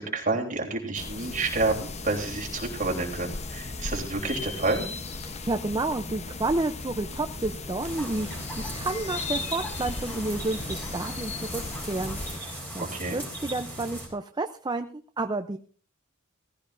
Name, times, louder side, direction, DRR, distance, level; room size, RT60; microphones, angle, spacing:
voice 1, 0.0-4.9 12.9-13.2, right 3 dB, 40° right, -1 dB, 3.3 m, -29 dB
sound 1, 0.9-12.4, left 3 dB, 35° left, 0.9 m, -36 dB
voice 2, 5.3-15.6, right 2 dB, 20° right, 7 dB, 0.5 m, -31 dB
sound 2, 7.8-14.1, right 1 dB, 10° left, 4.4 m, -38 dB
17.5 x 15.5 x 2.6 m, 0.43 s
head